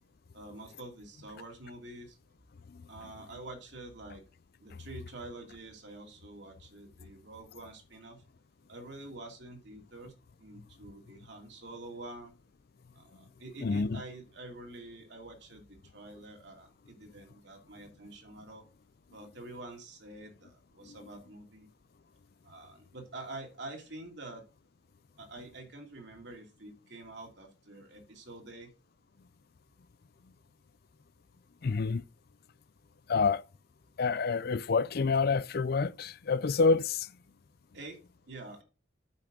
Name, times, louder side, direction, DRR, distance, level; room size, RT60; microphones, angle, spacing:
voice 1, 0.3-2.2 2.9-4.2 4.6-8.2 8.7-10.1 10.4-12.3 12.9-18.6 19.1-21.7 22.4-24.4 25.2-28.7 37.7-38.0 38.2-38.6, right 2 dB, 65° right, 2.8 m, -47 dB
voice 2, 13.6-14.0 20.8-20.9 31.6-32.0 33.1-33.4 34.0-37.1, left 4 dB, 55° left, 0.4 m, -28 dB
8.6 x 5.9 x 5.1 m
head